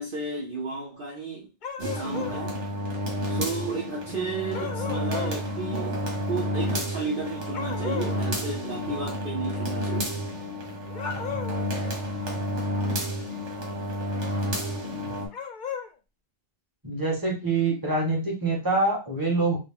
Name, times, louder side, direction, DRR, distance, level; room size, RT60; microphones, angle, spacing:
voice 1, 0.0-1.5 1.8-2.6 3.3-6.0 6.3-10.2, right 4 dB, 50° right, 1.0 m, -33 dB
sound 1, 1.6-2.4 4.5-5.4 7.5-8.2 10.9-11.7 15.3-15.9, left 7 dB, 50° left, 0.7 m, -35 dB
sound 2, 1.8-15.3, equal, 80° right, 1.4 m, -30 dB
voice 2, 16.8-19.6, right 3 dB, 20° right, 1.5 m, -25 dB
3.9 x 2.3 x 3.5 m
omnidirectional pair, 1.2 m